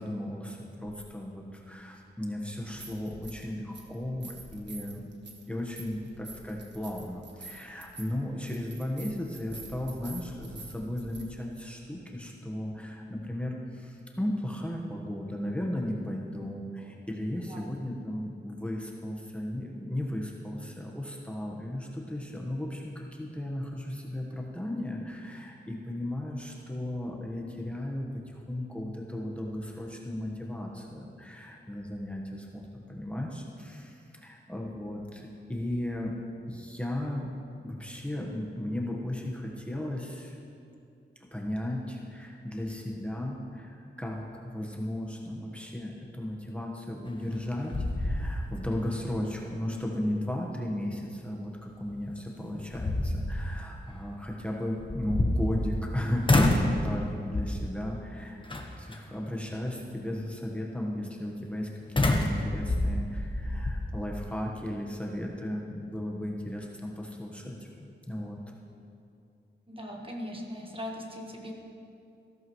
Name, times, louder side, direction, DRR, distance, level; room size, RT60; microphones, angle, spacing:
voice 1, 0.0-5.1 5.5-36.1 36.5-40.4 41.2-68.4, left 1 dB, 5° left, -2 dB, 1.3 m, -35 dB
sound 1, 0.9-1.0 2.5-3.5 3.7-11.2, right 3 dB, 70° right, 1.6 m, -47 dB
sound 2, 47.1-47.4 47.7-48.7 49.1-49.2 51.9-52.0 52.5-53.5 54.8-55.9 56.3-56.8 57.3-57.7 58.5-59.0 62.0-63.8, left 2 dB, 25° left, 1.2 m, -27 dB
voice 2, 69.7-71.5, equal, 30° right, 0 dB, 1.5 m, -39 dB
14.5 x 13.5 x 3.2 m, 2.6 s
wide cardioid pair, 95°, 19 cm